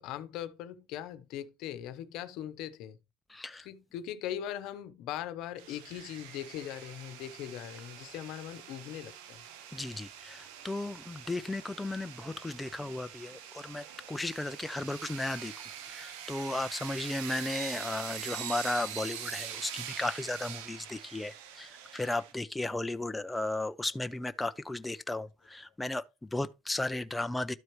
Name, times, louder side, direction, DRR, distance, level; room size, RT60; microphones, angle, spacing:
voice 1, 0.0-3.0 3.5-9.4 11.3-11.4 16.9-17.0 19.3-19.4 23.9-24.2, left 11 dB, 65° left, 0.9 m, -41 dB
voice 2, 3.3-3.7 9.7-15.5 15.9-27.5, left 2 dB, 10° left, 0.5 m, -35 dB
sound 1, 5.6-22.3, right 9 dB, 80° right, 1.1 m, -44 dB
12.5 x 4.5 x 3.1 m
supercardioid pair, 90°, 0 cm